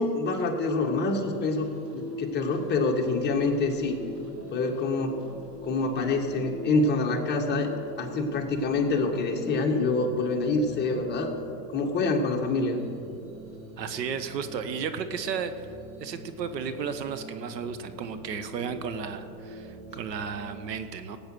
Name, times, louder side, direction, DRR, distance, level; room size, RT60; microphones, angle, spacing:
voice 1, 0.0-4.0 4.5-5.2 5.6-7.7 8.0-11.3 11.7-12.8, left 3 dB, 20° left, 0 dB, 1.7 m, -26 dB
sound 1, 0.8-20.6, equal, 40° right, 3.6 m, -43 dB
voice 2, 13.8-15.5 16.0-21.2, right 6 dB, 80° right, 11 dB, 1.5 m, -33 dB
19.0 x 8.6 x 6.3 m, 2.5 s
hypercardioid pair, 135°, 49 cm